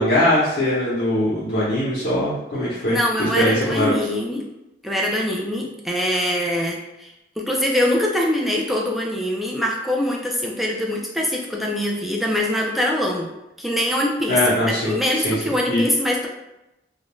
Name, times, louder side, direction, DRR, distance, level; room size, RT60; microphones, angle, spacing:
voice 1, 0.0-3.9 14.3-15.4 15.7-15.8, left 1 dB, 60° left, -10 dB, 0.7 m, -21 dB
voice 2, 2.9-4.5 4.8-7.1 7.4-13.3 13.6-14.4 14.7-16.3, left 1 dB, ahead, -2 dB, 0.3 m, -23 dB
2.3 x 2.1 x 3.0 m, 0.92 s
head